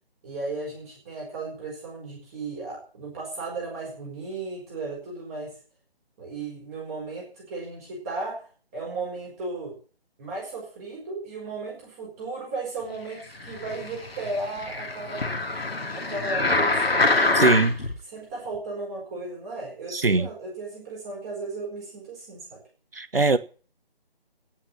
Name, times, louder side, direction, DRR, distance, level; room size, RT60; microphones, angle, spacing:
voice 1, 0.2-5.5 6.2-8.4 8.7-9.8 10.2-15.2 15.9-17.6 18.1-22.6, right 3 dB, 15° right, -3 dB, 4.8 m, -35 dB
sound 1, 13.4-17.9 18.5-18.6, left 3 dB, 70° left, 2.9 m, -25 dB
voice 2, 17.3-17.8 19.9-20.3 22.9-23.4, right 3 dB, 65° right, 14 dB, 1.5 m, -21 dB
17.0 x 6.0 x 8.5 m, 0.38 s
figure-of-eight pair, 155°, 31 cm